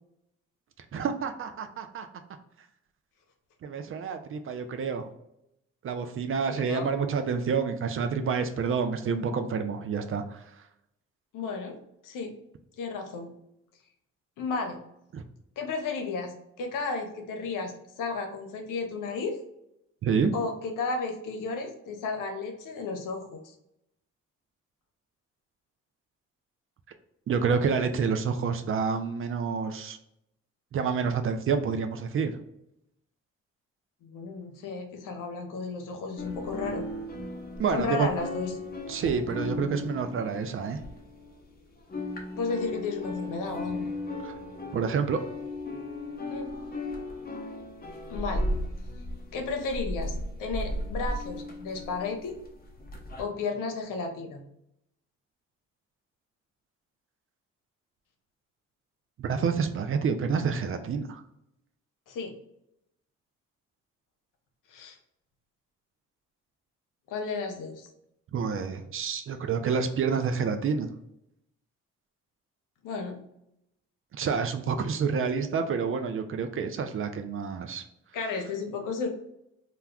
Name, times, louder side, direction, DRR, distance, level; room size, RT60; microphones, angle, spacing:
voice 1, 0.9-2.1 3.6-5.1 5.8-10.4 15.1-15.2 20.0-20.3 27.3-30.0 30.7-32.3 37.6-38.1 38.9-40.8 44.2-44.3 44.7-45.2 59.2-61.2 68.3-70.9 74.1-77.8, right 6 dB, 40° right, 7 dB, 0.4 m, -28 dB
voice 2, 6.5-6.9 11.3-11.8 12.0-12.3 12.8-13.3 14.4-14.8 15.6-17.7 18.0-19.4 20.3-23.5 34.0-36.9 37.7-38.5 39.3-39.4 42.3-43.9 46.3-46.5 48.1-48.4 49.3-52.4 53.2-54.4 62.1-62.3 64.7-65.0 67.1-67.9 72.8-73.2 78.1-79.1, left 4 dB, 70° left, 4 dB, 0.7 m, -33 dB
sound 1, 36.2-41.5 41.8-53.2, left 1 dB, 30° left, 0.7 m, -36 dB
2.2 x 2.2 x 3.5 m, 0.80 s
hypercardioid pair, 50°, 33 cm